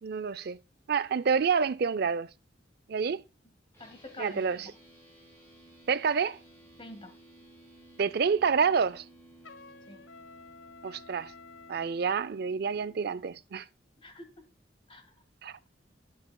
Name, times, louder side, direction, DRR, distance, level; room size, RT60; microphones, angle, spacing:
voice 1, 0.0-0.6 0.9-2.3 2.9-3.2 4.2-4.7 5.9-6.4 8.0-9.0 10.8-11.3 11.7-13.7 15.4-15.6, right 6 dB, 55° right, 0.4 m, -28 dB
sound 1, 3.7-13.1, right 2 dB, 15° left, 4.8 m, -56 dB
voice 2, 3.8-4.5 6.8-7.1 9.9-10.0 14.0-14.4 14.9-15.1, left 2 dB, 30° left, 1.7 m, -46 dB
Trumpet, 9.4-12.0, left 5 dB, 85° left, 0.6 m, -51 dB
11.5 x 8.4 x 2.2 m
head